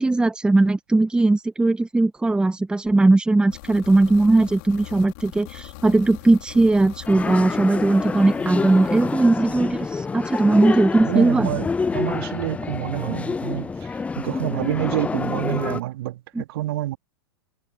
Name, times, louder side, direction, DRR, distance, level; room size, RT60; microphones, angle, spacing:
voice 1, 0.0-11.5 16.3-16.4, right 2 dB, 5° right, 1.2 m, -19 dB
sound 1, 3.5-9.2, left 26 dB, 50° left, 4.6 m, -41 dB
sound 2, 7.1-15.8, left 4 dB, 10° left, 0.4 m, -27 dB
voice 2, 11.1-11.7 11.9-17.0, right 15 dB, 60° right, 3.4 m, -28 dB
hypercardioid pair, 105°, 14 cm